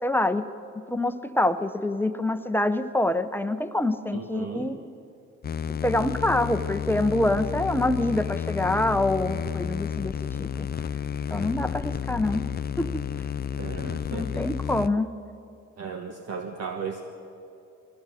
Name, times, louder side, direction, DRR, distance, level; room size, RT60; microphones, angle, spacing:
voice 1, 0.0-0.4 0.9-4.8 5.8-10.5 11.3-12.5 12.8-13.1 13.8-15.1, left 1 dB, 5° left, 10 dB, 0.9 m, -26 dB
voice 2, 4.1-4.7 13.6-14.5 15.8-17.0, right 5 dB, 55° right, 4 dB, 1.5 m, -35 dB
sound 1, 5.4-14.9, left 8 dB, 30° left, 0.5 m, -31 dB
22.0 x 17.0 x 7.6 m, 2.7 s
cardioid pair, 90°, 30 cm